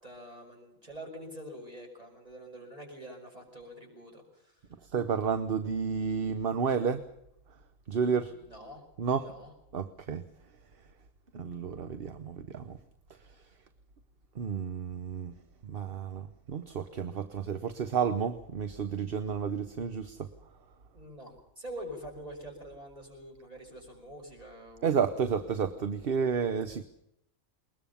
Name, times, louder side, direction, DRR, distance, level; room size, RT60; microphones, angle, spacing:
voice 1, 0.0-4.6 8.3-8.8 9.2-9.5 20.9-24.9, equal, 30° right, 1 dB, 6.1 m, -45 dB
voice 2, 4.9-7.0 7.9-8.3 9.0-9.3 9.7-10.2 11.3-12.8 14.4-15.3 15.6-20.3 24.8-26.8, right 6 dB, 50° right, 11 dB, 1.1 m, -31 dB
21.5 x 20.5 x 7.1 m, 0.77 s
omnidirectional pair, 1.4 m